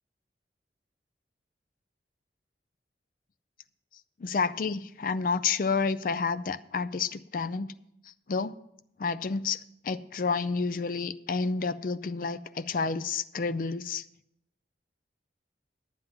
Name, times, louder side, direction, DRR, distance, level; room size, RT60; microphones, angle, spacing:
voice 1, 4.2-7.7 8.3-8.5 9.0-9.6 9.8-14.0, left 4 dB, 50° left, 13 dB, 0.4 m, -30 dB
10.0 x 9.0 x 5.7 m, 0.80 s
head